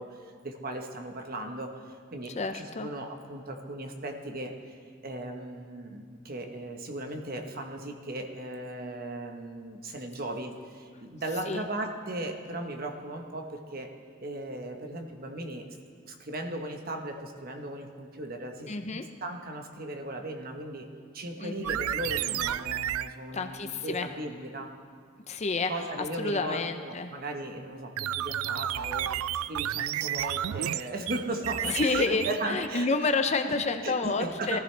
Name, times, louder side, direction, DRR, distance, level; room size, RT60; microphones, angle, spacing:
voice 1, 0.0-4.8 5.0-13.9 14.2-15.8 16.0-20.9 21.1-24.8 25.7-29.2 29.4-32.9 33.8-34.6, right 1 dB, 45° right, 4 dB, 1.2 m, -37 dB
voice 2, 2.4-2.9 11.5-11.7 18.7-19.0 21.4-21.8 23.3-24.1 25.3-25.7 26.2-27.1 31.7-34.6, left 3 dB, 30° left, 7 dB, 0.6 m, -29 dB
sound 1, 21.6-23.1 28.0-32.7, right 11 dB, 85° right, 0.3 m, -31 dB
19.5 x 14.5 x 3.3 m, 2.1 s
head